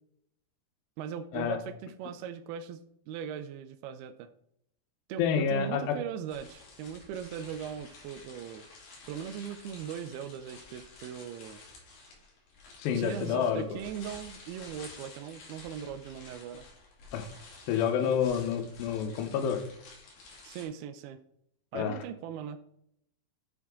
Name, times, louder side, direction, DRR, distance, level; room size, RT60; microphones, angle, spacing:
voice 1, 1.0-2.8 3.1-4.3 5.1-8.7 9.1-11.6 12.9-16.6 20.4-21.2 21.7-22.6, right 8 dB, 80° right, 7 dB, 2.3 m, -39 dB
voice 2, 5.2-6.0 12.8-13.8 17.1-17.3 17.7-19.6 21.7-22.0, left 7 dB, 90° left, 7 dB, 3.1 m, -29 dB
sound 1, 6.3-20.7, left 3 dB, 60° left, 4.0 m, -51 dB
9.4 x 5.8 x 3.6 m, 0.72 s
omnidirectional pair, 4.7 m